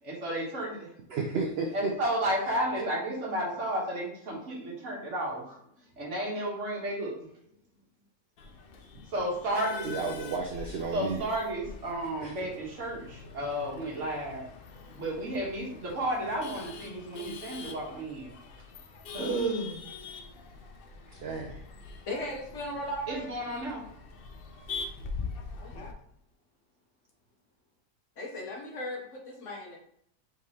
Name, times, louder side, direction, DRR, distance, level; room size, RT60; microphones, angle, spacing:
voice 1, 0.0-0.9 1.7-5.6 6.0-7.2 9.1-9.9 10.9-14.4 14.9-18.3 19.1-19.9 23.1-23.8, right 1 dB, 55° right, -2 dB, 1.4 m, -32 dB
voice 2, 1.1-1.9 9.8-11.2 12.2-12.4 21.2-21.6, right 4 dB, 70° right, 2 dB, 0.6 m, -32 dB
Male speech man speaking / Laughter / Chatter, 8.4-25.9, left 4 dB, 85° left, 0.5 m, -44 dB
voice 3, 22.1-23.4 25.6-25.9 28.2-29.8, left 1 dB, 55° left, 0 dB, 1.1 m, -37 dB
4.7 x 3.5 x 2.8 m, 0.70 s
omnidirectional pair, 1.6 m